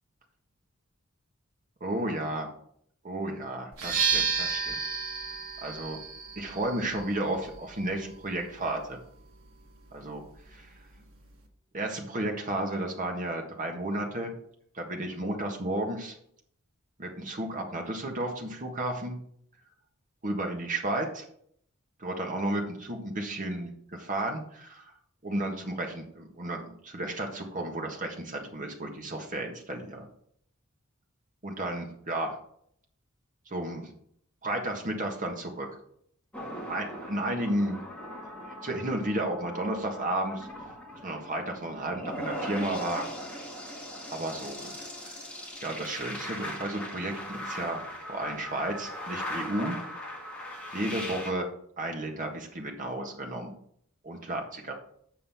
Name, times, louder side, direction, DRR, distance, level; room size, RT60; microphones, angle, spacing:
voice 1, 1.8-2.5 3.0-4.7 5.6-6.0 6.4-9.0 9.9-10.2 10.5-10.7 11.7-14.3 14.7-16.2 17.0-19.2 20.2-21.2 22.0-24.9 25.2-30.1 31.4-32.3 33.5-33.9 34.4-35.7 36.7-37.8 38.2-38.3 38.6-40.5 41.0-43.0 44.1-44.7 45.0-45.2 45.6-49.8 50.7-51.5 51.8-53.5 54.0-54.4 54.7-54.8, right 1 dB, 40° right, 2 dB, 1.5 m, -33 dB
sound 1, 3.7-11.5, right 6 dB, 80° right, 1.4 m, -34 dB
sound 2, 36.3-51.3, equal, 5° left, 1.7 m, -39 dB
7.5 x 5.4 x 5.5 m, 0.67 s
head